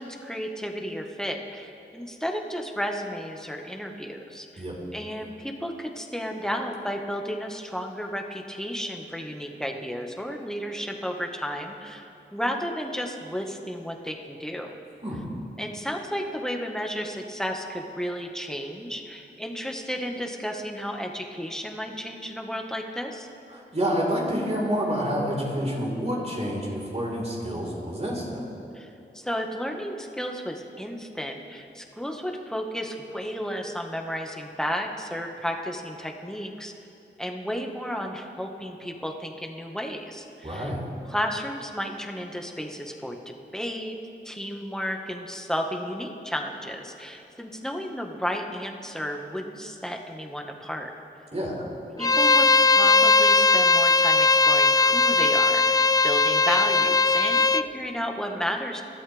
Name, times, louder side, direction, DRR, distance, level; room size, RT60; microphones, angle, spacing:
voice 1, 0.0-4.6 4.9-14.8 15.6-23.3 28.7-36.7 37.2-40.7 41.1-44.0 44.2-50.9 52.0-58.8, equal, 5° left, 2 dB, 1.7 m, -33 dB
voice 2, 23.5-28.4 40.4-40.8 51.3-51.6, equal, 35° right, -3 dB, 4.6 m, -28 dB
Bowed string instrument, 52.0-57.7, left 3 dB, 20° left, 0.4 m, -19 dB
26.0 x 13.0 x 3.6 m, 2.8 s
cardioid pair, 50°, 19 cm